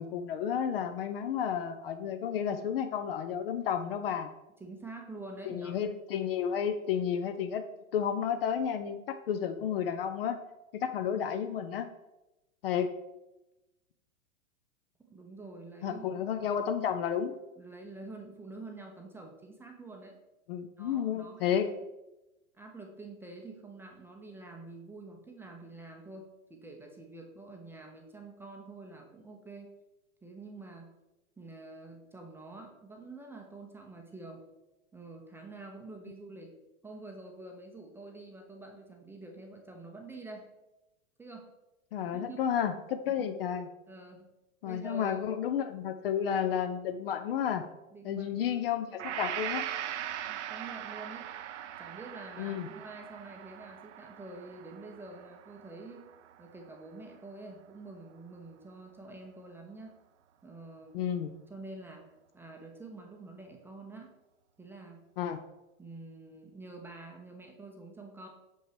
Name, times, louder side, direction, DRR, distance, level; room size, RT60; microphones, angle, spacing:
voice 1, 0.0-4.3 5.5-7.7 7.9-10.4 10.7-11.9 12.6-12.9 15.8-17.3 20.5-21.7 41.9-43.7 44.6-47.6 48.0-49.6 52.4-52.7 60.9-61.3 65.2-65.4, left 8 dB, 45° left, 9 dB, 0.5 m, -31 dB
voice 2, 4.6-5.8 15.1-16.6 17.6-20.2 20.8-21.6 22.5-29.7 30.2-30.9 31.4-34.4 34.9-36.5 36.8-40.5 41.2-41.5 42.0-42.4 43.1-43.3 43.9-44.3 44.6-45.2 47.9-48.4 50.2-51.3 51.8-56.1 56.4-60.0 60.4-61.0 61.5-64.1 64.6-65.0 65.8-68.3, right 2 dB, 5° right, 2 dB, 0.6 m, -47 dB
Gong, 49.0-57.0, right 11 dB, 60° right, 0.5 m, -41 dB
6.1 x 5.3 x 3.3 m, 0.99 s
figure-of-eight pair, 100°, 41 cm